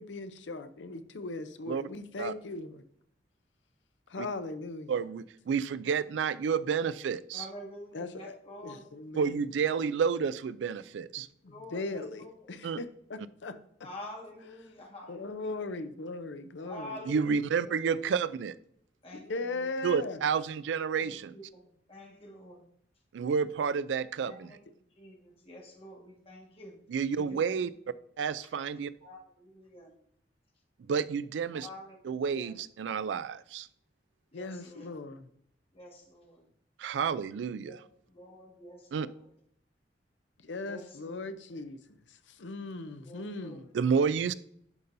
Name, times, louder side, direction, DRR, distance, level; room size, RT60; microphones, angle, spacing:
voice 1, 0.0-2.8 4.1-4.9 7.9-8.3 8.6-9.4 11.2-13.9 15.1-17.1 17.9-18.0 19.1-20.2 34.3-35.3 40.4-41.8 42.4-43.7, left 2 dB, 80° left, 0.6 m, -39 dB
voice 2, 4.9-7.5 9.1-11.3 12.6-12.8 17.0-18.5 19.8-21.3 23.1-24.6 26.9-27.7 28.2-28.9 30.9-31.7 32.0-33.7 36.8-37.8 38.9-39.1 43.7-44.3, right 6 dB, 80° right, 0.3 m, -30 dB
voice 3, 7.3-8.9 11.5-11.8 12.2-12.3 13.8-15.4 16.6-17.2 19.0-19.2 21.3-21.4 21.9-22.6 24.2-24.4 25.0-25.2 25.4-26.8 27.3-27.4 29.0-29.2 29.5-29.9 31.5-32.5 34.3-34.9 35.8-36.4 37.7-37.8 38.1-39.2 40.6-41.2 43.0-43.6, left 1 dB, 35° left, 1.6 m, -47 dB
10.5 x 5.4 x 2.6 m
head